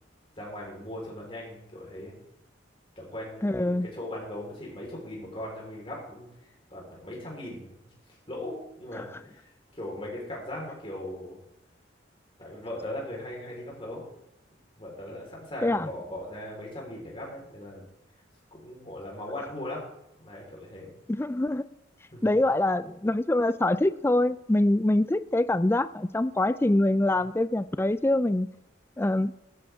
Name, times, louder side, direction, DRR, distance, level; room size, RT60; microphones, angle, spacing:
voice 1, 0.4-2.1 3.0-7.7 8.1-11.4 12.4-14.0 14.8-17.8 18.5-20.9 22.1-22.3, left 1 dB, 30° left, 4.2 m, -39 dB
voice 2, 3.4-3.9 9.0-9.1 15.6-15.9 21.1-21.7 22.2-28.5 29.0-29.3, left 1 dB, 10° left, 0.3 m, -24 dB
15.5 x 12.5 x 3.6 m
head